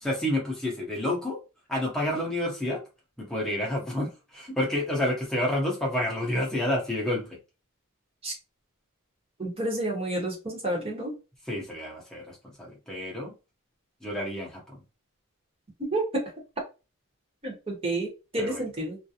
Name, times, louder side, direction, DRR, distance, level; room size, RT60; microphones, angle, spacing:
voice 1, 0.0-1.4 1.7-2.8 3.2-7.4 11.4-13.3 14.0-14.8 18.4-18.6, left 1 dB, ahead, 0.7 m, -29 dB
voice 2, 9.4-11.1 15.9-16.0 17.4-19.0, right 1 dB, 25° right, 0.8 m, -30 dB
2.4 x 2.0 x 2.7 m
head